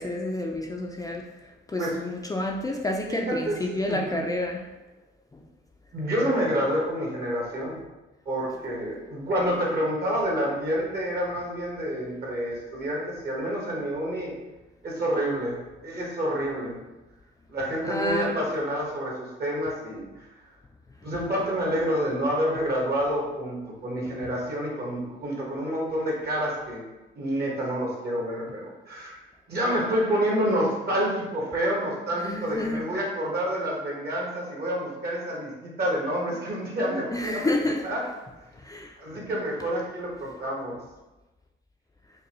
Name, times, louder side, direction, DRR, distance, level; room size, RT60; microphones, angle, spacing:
voice 1, 0.0-4.6 5.3-5.4 17.8-18.4 32.2-32.8 37.1-37.8 38.6-39.0, left 1 dB, 15° left, 0 dB, 0.4 m, -29 dB
voice 2, 3.1-4.2 5.9-7.8 8.2-14.3 14.8-16.7 17.5-20.3 21.0-26.9 27.1-29.2 29.5-38.0 39.0-40.8, equal, 50° right, -3 dB, 1.4 m, -28 dB
5.1 x 2.2 x 3.0 m, 1.1 s
cardioid pair, 90°, 20 cm